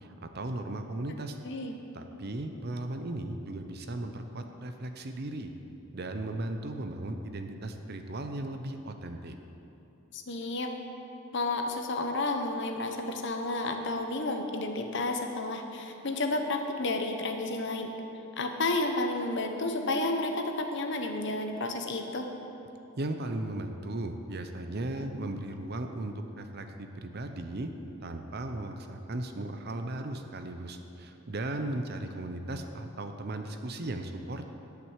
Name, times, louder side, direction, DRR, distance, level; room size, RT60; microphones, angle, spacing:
voice 1, 0.3-1.4 1.9-5.5 5.9-9.3 23.0-27.7 28.0-34.5, right 1 dB, 50° right, 6 dB, 0.7 m, -36 dB
voice 2, 10.1-10.7 11.3-17.9 18.4-22.3, left 2 dB, 55° left, 4 dB, 0.9 m, -31 dB
11.0 x 6.0 x 8.1 m, 2.9 s
head